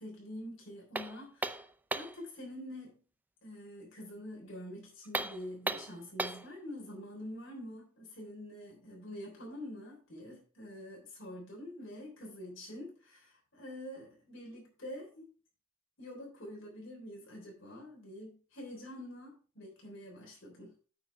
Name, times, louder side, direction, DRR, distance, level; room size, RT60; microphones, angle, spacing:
voice 1, 0.0-1.7 1.9-3.0 3.4-15.3 16.0-20.7, left 1 dB, 65° left, -1 dB, 3.4 m, -46 dB
sound 1, 0.9-2.2 5.0-6.5, right 2 dB, 10° right, 0.4 m, -36 dB
9.0 x 5.5 x 4.6 m, 0.39 s
head